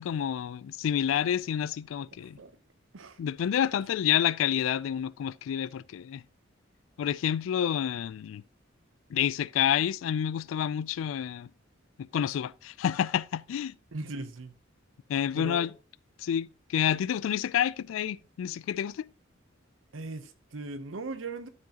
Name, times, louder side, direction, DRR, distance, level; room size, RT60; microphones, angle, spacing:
voice 1, 0.0-2.4 3.2-6.2 7.0-8.4 9.1-11.5 12.0-13.7 15.1-15.7 16.2-19.1, left 9 dB, 80° left, 0.3 m, -29 dB
voice 2, 13.9-14.5 15.4-15.7 19.9-21.5, right 2 dB, 75° right, 0.7 m, -38 dB
12.0 x 4.7 x 2.8 m
head